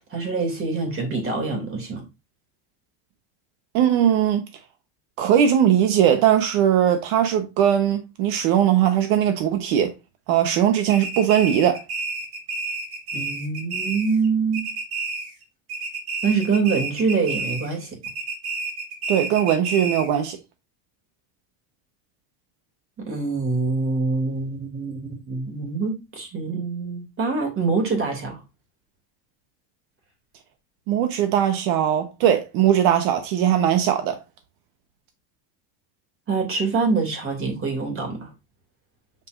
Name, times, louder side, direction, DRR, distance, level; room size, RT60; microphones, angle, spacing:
voice 1, 0.0-2.0 13.1-14.7 16.2-18.0 23.1-28.4 36.3-38.3, right 4 dB, 25° right, 2.8 m, -25 dB
voice 2, 3.7-4.4 5.2-9.9 10.3-11.8 19.1-20.4 30.9-34.2, right 10 dB, 70° right, 1.2 m, -19 dB
sound 1, 10.9-14.3 14.5-15.4 15.7-17.7 18.0-20.2, right 3 dB, 50° right, 2.9 m, -30 dB
7.5 x 5.9 x 2.6 m
cardioid pair, 145°, 49 cm